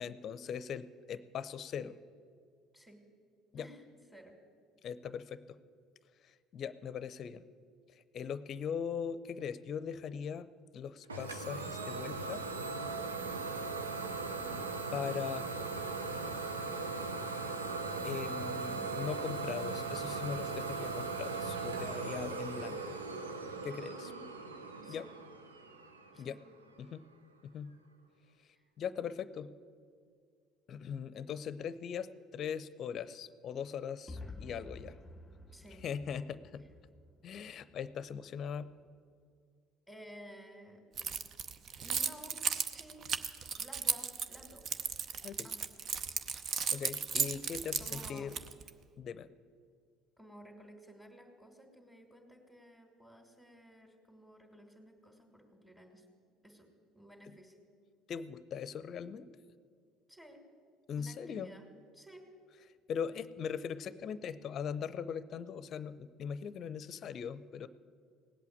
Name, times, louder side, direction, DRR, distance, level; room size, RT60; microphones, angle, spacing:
voice 1, 0.0-2.0 3.5-3.7 4.8-5.6 6.2-7.4 7.9-10.5 10.7-12.4 14.9-15.4 18.0-23.0 23.6-24.1 24.9-25.0 26.2-26.4 26.8-27.0 27.4-27.7 28.8-29.5 30.7-35.0 35.8-36.6 37.2-38.7 45.2-45.5 46.7-48.4 49.0-49.3 58.1-59.3 60.9-61.5 62.9-67.7, left 7 dB, 50° left, 16 dB, 0.6 m, -40 dB
Idling / Domestic sounds home sounds, 11.1-26.6, right 4 dB, 90° right, 0.8 m, -39 dB
voice 2, 15.2-15.9 16.6-17.0 23.9-24.2 24.8-25.2 26.1-26.4 28.4-28.6 35.5-35.8 39.9-40.8 41.8-43.1 43.6-44.7 45.4-45.7 47.8-48.3 50.2-56.0 56.4-56.7 56.9-57.6 60.1-60.4 61.0-61.7 61.9-62.2, equal, 10° right, 1 dB, 2.6 m, -54 dB
sound 1, 34.1-38.0, left 2 dB, 10° left, 1.3 m, -50 dB
Keys jangling, 41.0-48.7, right 6 dB, 45° right, 0.7 m, -35 dB
18.0 x 8.3 x 8.8 m, 2.1 s
hypercardioid pair, 60°, 0 cm